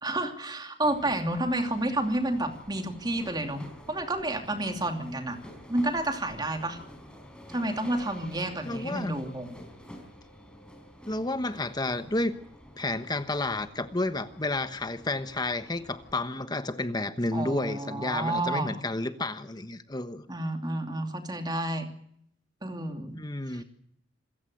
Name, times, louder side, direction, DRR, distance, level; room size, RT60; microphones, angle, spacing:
voice 1, 0.0-5.4 5.7-6.8 7.5-9.6 17.3-18.7 20.3-21.9 22.6-23.2 23.5-23.6, right 1 dB, 25° right, 5 dB, 2.8 m, -30 dB
sound 1, 0.8-16.2, equal, 5° left, 4.8 m, -49 dB
voice 2, 8.6-9.1 11.1-12.3 12.8-20.2 23.2-23.6, left 2 dB, 20° left, 10 dB, 1.2 m, -31 dB
27.5 x 15.5 x 7.7 m, 0.72 s
head